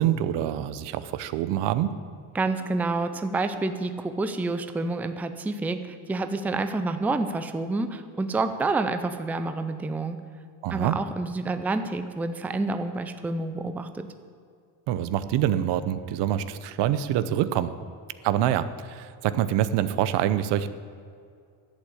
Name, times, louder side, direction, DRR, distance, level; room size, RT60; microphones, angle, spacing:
voice 1, 0.0-2.0 10.6-11.0 14.9-17.7 18.2-20.7, right 11 dB, 75° right, 13 dB, 0.8 m, -25 dB
voice 2, 2.3-10.2 10.7-14.1, right 3 dB, 5° right, 9 dB, 0.4 m, -28 dB
11.5 x 8.5 x 8.3 m, 2.3 s
cardioid pair, 150°, 42 cm